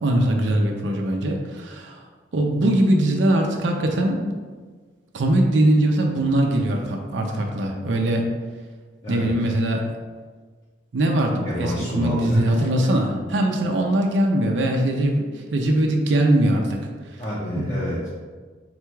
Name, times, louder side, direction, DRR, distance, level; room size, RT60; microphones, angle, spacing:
voice 1, 0.0-2.0 2.3-4.2 5.1-8.3 9.1-9.8 10.9-16.8 17.6-17.7, right 1 dB, 75° right, 1 dB, 0.5 m, -21 dB
voice 2, 11.4-12.7 17.2-18.1, equal, 30° left, -9 dB, 0.7 m, -26 dB
3.9 x 2.3 x 4.5 m, 1.5 s
head